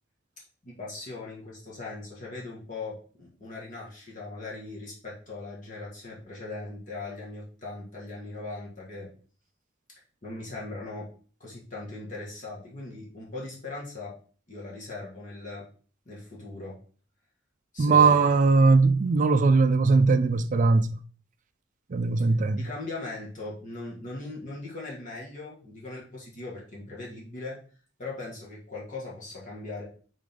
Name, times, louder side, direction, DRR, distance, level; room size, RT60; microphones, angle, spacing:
voice 1, 0.6-9.1 10.2-11.1 11.4-14.1 14.5-15.6 16.1-16.7 17.7-18.2 22.6-27.6 28.0-29.8, left 2 dB, 40° left, 1.8 m, -39 dB
voice 2, 17.8-21.0 21.9-22.7, right 4 dB, 40° right, 0.4 m, -20 dB
5.1 x 3.9 x 5.3 m
head